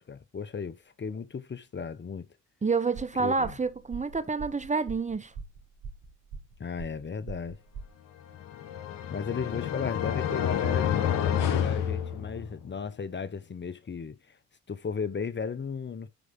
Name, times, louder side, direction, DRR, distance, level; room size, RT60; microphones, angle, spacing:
voice 1, 0.0-2.3 3.2-3.5 6.6-7.6 9.1-14.4 14.7-16.1, left 5 dB, 35° left, 1.0 m, -35 dB
voice 2, 2.6-5.3, right 4 dB, 20° right, 0.9 m, -28 dB
sound 1, 2.9-7.9, right 5 dB, 60° right, 3.9 m, -43 dB
sound 2, 8.3-12.7, left 9 dB, 75° left, 1.4 m, -29 dB
10.0 x 4.9 x 3.8 m
hypercardioid pair, 50°, 34 cm